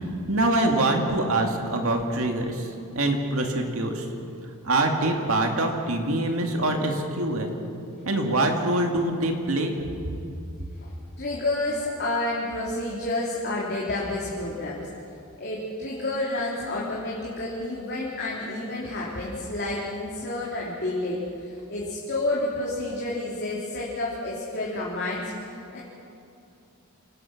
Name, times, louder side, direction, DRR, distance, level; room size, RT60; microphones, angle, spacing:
voice 1, 0.3-4.1 4.6-7.6 8.1-9.7, right 2 dB, 65° right, 3 dB, 2.3 m, -24 dB
voice 2, 10.8-14.9 15.4-25.3 25.7-25.8, left 2 dB, 50° left, -5 dB, 3.2 m, -30 dB
26.5 x 18.0 x 6.0 m, 2.7 s
head